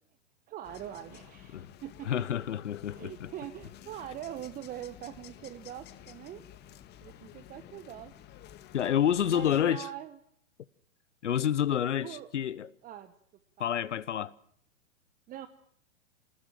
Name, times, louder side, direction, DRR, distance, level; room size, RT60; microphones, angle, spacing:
voice 1, 0.5-2.1 2.9-6.4 7.0-8.1 9.2-10.2 11.7-12.3 12.8-13.1 13.6-13.7 15.3-15.5, right 12 dB, 20° right, 1.2 m, -43 dB
sound 1, 0.6-9.7, left 11 dB, 25° left, 1.7 m, -52 dB
voice 2, 2.1-3.3 8.7-9.9 11.2-12.7 13.6-14.3, left 10 dB, 70° left, 1.0 m, -28 dB
27.5 x 19.5 x 7.6 m
figure-of-eight pair, 110°, 38 cm